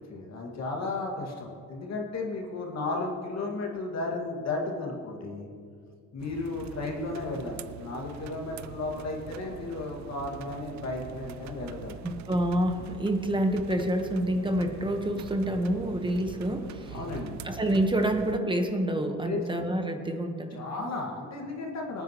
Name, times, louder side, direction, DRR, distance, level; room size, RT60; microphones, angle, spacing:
voice 1, 0.0-5.5 6.1-12.0 16.9-17.4 19.2-19.4 20.5-22.0, left 3 dB, 60° left, 0 dB, 2.0 m, -34 dB
sound 1, 6.2-18.4, right 10 dB, 65° right, 0.5 m, -44 dB
voice 2, 12.0-16.9 17.4-20.6, right 1 dB, 15° right, 5 dB, 1.2 m, -28 dB
18.5 x 9.1 x 3.1 m, 2.2 s
cardioid pair, 90°, 30 cm